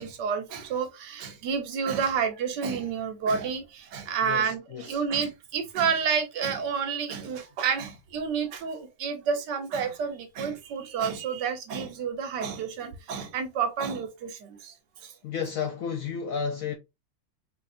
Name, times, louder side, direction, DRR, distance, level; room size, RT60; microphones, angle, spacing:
voice 1, 0.0-14.3, right 6 dB, 65° right, 1.3 m, -29 dB
voice 2, 4.2-5.0 15.2-16.8, left 6 dB, 75° left, 0.7 m, -32 dB
3.9 x 2.8 x 2.5 m
omnidirectional pair, 2.1 m